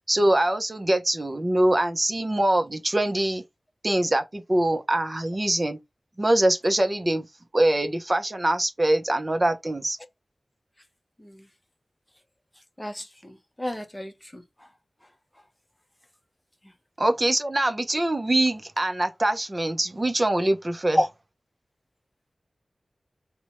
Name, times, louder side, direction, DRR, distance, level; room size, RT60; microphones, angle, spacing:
voice 1, 0.1-3.4 3.8-5.8 6.2-7.3 7.5-10.0 17.0-21.0, right 1 dB, 30° right, 0.5 m, -23 dB
voice 2, 12.8-14.4 20.9-21.1, equal, 15° left, 0.6 m, -29 dB
4.2 x 2.1 x 2.8 m
wide cardioid pair, 75°, 0 cm